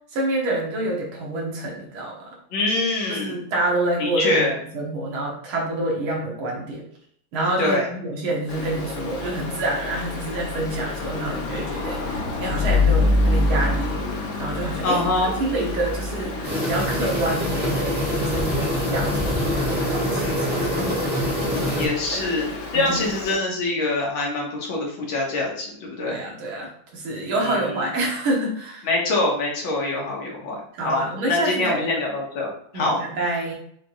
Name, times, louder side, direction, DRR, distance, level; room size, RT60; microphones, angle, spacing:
voice 1, 0.1-2.3 3.1-4.4 4.7-6.8 7.3-13.9 14.4-15.1 15.3-20.7 22.1-22.3 22.7-23.0 26.0-28.9 30.7-31.9 32.7-33.5, right 2 dB, 85° right, -1 dB, 2.0 m, -27 dB
voice 2, 2.5-3.4 4.0-4.6 7.6-7.9 14.8-15.4 21.8-26.2 27.4-27.9 28.8-32.5 32.7-33.0, left 2 dB, 75° left, -2 dB, 2.0 m, -24 dB
Stream, 8.5-23.4, left 2 dB, 60° left, 0.8 m, -27 dB
sound 1, 16.4-21.9, equal, 5° right, 0.9 m, -25 dB
6.7 x 2.9 x 2.5 m, 0.66 s
omnidirectional pair, 2.3 m